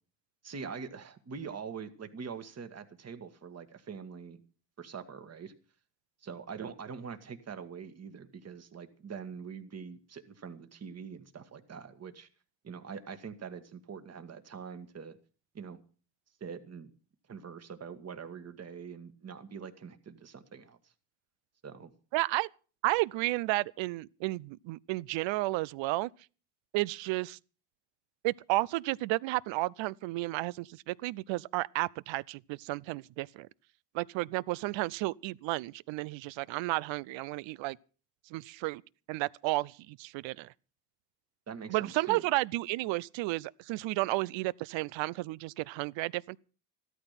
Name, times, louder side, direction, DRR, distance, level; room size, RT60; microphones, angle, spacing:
voice 1, 0.4-4.4 4.8-5.5 6.2-12.3 12.6-15.2 15.5-15.8 16.4-16.9 17.3-20.9 21.6-21.9 41.5-42.3, right 6 dB, 35° right, 1.8 m, -44 dB
voice 2, 22.1-22.5 22.8-26.1 26.7-27.4 28.2-33.5 33.9-37.8 38.3-38.8 39.1-40.5 41.7-46.4, right 20 dB, 80° right, 0.6 m, -32 dB
14.5 x 13.0 x 5.8 m
cardioid pair, 110°, 45 cm